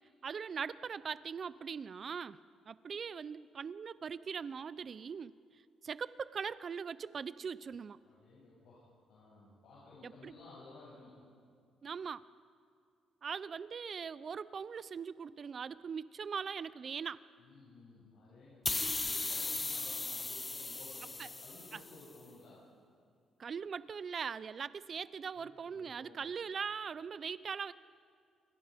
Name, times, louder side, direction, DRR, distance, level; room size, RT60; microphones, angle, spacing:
voice 1, 0.2-2.4 2.7-5.3 5.8-8.0 10.0-10.3 11.8-12.2 13.2-17.2 21.2-21.3 21.7-21.8 23.4-27.7, right 6 dB, 45° right, 17 dB, 0.7 m, -41 dB
voice 2, 8.0-11.4 17.4-22.7 25.4-26.2, left 2 dB, 75° left, -7 dB, 7.4 m, -56 dB
sound 1, 18.6-22.0, left 3 dB, 25° left, 0.5 m, -37 dB
27.5 x 23.0 x 5.3 m, 2.3 s
cardioid pair, 90°, 0 cm